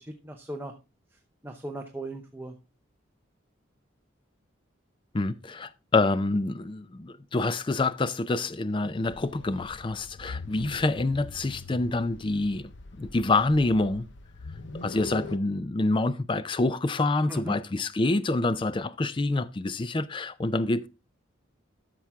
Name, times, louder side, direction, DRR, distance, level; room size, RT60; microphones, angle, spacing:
voice 1, 0.1-0.7 1.1-2.6 17.3-17.5, right 1 dB, 10° right, 0.7 m, -38 dB
voice 2, 5.1-12.7 13.0-14.1 14.7-20.9, left 2 dB, 25° left, 0.4 m, -27 dB
sound 1, 9.1-15.4, left 3 dB, 60° left, 0.7 m, -42 dB
13.0 x 6.0 x 3.5 m
head